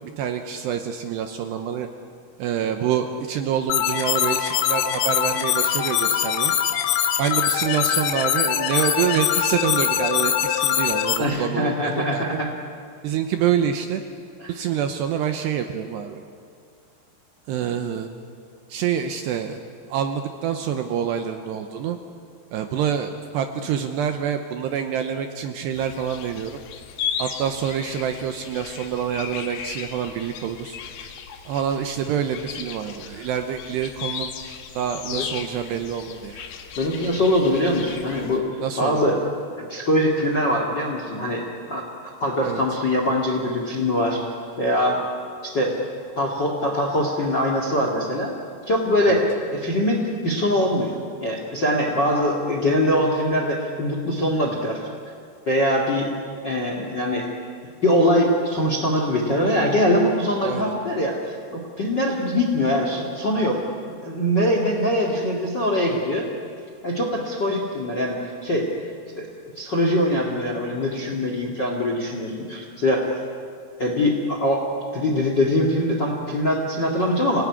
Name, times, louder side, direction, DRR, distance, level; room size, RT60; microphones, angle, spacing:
voice 1, 0.2-1.9 2.4-6.5 7.2-12.3 13.0-14.0 14.5-16.2 17.5-18.1 18.7-19.6 19.9-22.0 22.5-26.6 27.2-30.8 31.5-34.3 34.7-36.4 38.6-39.2 42.4-42.6 45.0-45.1 49.1-49.2 60.4-60.7, right 8 dB, 80° right, 6 dB, 2.6 m, -26 dB
sound 1, 3.7-11.2, left 10 dB, 85° left, 3.9 m, -22 dB
voice 2, 11.2-12.5 14.4-14.5 35.1-35.2 36.8-38.4 38.8-39.2 39.6-41.8 42.2-44.2 44.6-45.0 45.4-45.8 46.1-48.3 48.7-54.8 55.4-56.1 56.4-57.3 57.8-66.3 66.8-68.7 69.1-69.3 69.5-73.1 73.8-77.5, left 1 dB, 40° left, 1 dB, 1.5 m, -22 dB
sound 2, 25.7-38.4, left 7 dB, 65° left, 3.1 m, -36 dB
27.0 x 18.5 x 9.7 m, 2.2 s
omnidirectional pair, 5.7 m